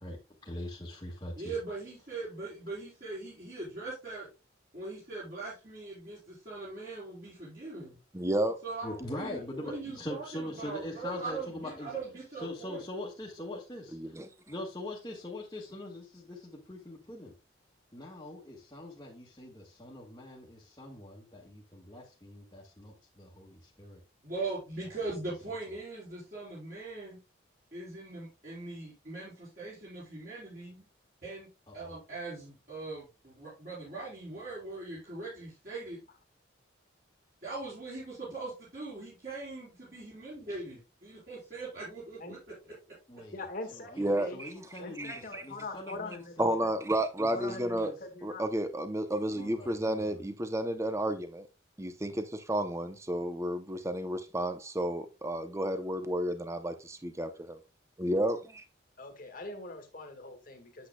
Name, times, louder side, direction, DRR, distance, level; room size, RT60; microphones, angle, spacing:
voice 1, 0.4-1.5 8.8-12.0 12.4-17.3 17.9-24.0 31.7-32.0 43.1-43.4 43.7-46.6 47.2-47.9 49.3-50.2, left 1 dB, 20° left, 1.5 m, -42 dB
voice 2, 1.4-4.3 4.7-8.0 8.6-12.8 24.2-27.2 27.7-30.8 31.2-31.5 31.7-36.0 37.4-42.4 42.6-42.7, right 3 dB, 45° right, 4.2 m, -41 dB
voice 3, 8.1-8.6 13.9-14.3 44.0-44.5 45.0-45.4 46.4-47.9 48.2-51.5 51.8-57.6 58.0-58.6, right 1 dB, 15° right, 0.7 m, -32 dB
voice 4, 43.3-44.4 44.8-46.7 47.3-48.4 59.0-60.9, left 2 dB, 45° left, 1.7 m, -43 dB
8.6 x 8.0 x 2.2 m
head